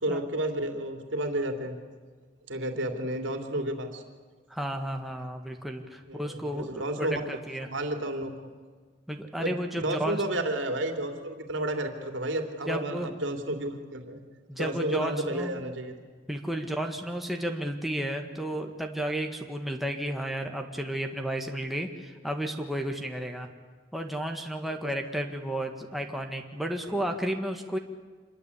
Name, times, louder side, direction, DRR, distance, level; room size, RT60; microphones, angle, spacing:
voice 1, 0.0-1.8 2.5-4.0 6.1-7.2 7.6-8.5 9.4-14.2 14.5-15.9 26.9-27.0, right 1 dB, 80° right, 4 dB, 3.0 m, -31 dB
voice 2, 4.5-7.7 9.1-10.2 12.7-13.1 14.5-15.5 16.3-23.5 23.9-27.8, right 1 dB, ahead, 2 dB, 1.8 m, -32 dB
26.5 x 22.5 x 8.5 m, 1.5 s
head